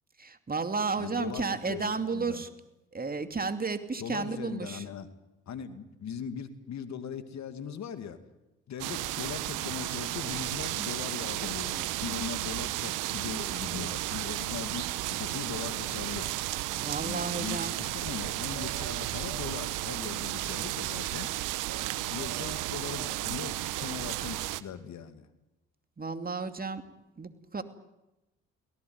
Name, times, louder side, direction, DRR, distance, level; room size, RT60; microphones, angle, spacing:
voice 1, 0.2-2.5 2.9-4.8 16.7-17.7 26.0-26.8 27.2-27.6, right 4 dB, 30° right, 8 dB, 2.7 m, -32 dB
voice 2, 1.0-2.4 4.0-5.1 5.5-8.2 8.7-14.8 15.1-16.3 17.0-21.3 22.1-25.3, left 7 dB, 60° left, 10 dB, 2.5 m, -40 dB
sound 1, 8.8-24.6, right 16 dB, 80° right, 1.0 m, -33 dB
24.5 x 18.0 x 9.7 m, 0.97 s
supercardioid pair, 55°, 31 cm